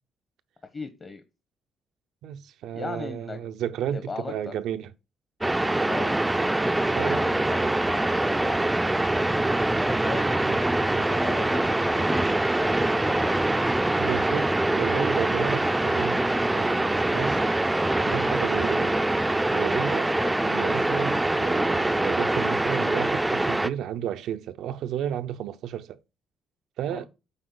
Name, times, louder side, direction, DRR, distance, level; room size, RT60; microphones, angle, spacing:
voice 1, 0.7-1.2 2.7-3.4 3.9-4.5 5.8-6.2 6.9-9.3 9.8-13.5 20.1-20.3 26.9-27.0, left 3 dB, 35° left, 1.0 m, -38 dB
voice 2, 2.2-4.9 6.9-7.2 10.4-11.0 14.0-17.4 17.9-19.0 19.5-20.1 20.4-26.0 26.8-27.1, right 10 dB, 85° right, 0.5 m, -32 dB
sound 1, 5.4-23.7, right 1 dB, 10° right, 0.4 m, -24 dB
8.9 x 3.7 x 3.9 m
cardioid pair, 90°, 0 cm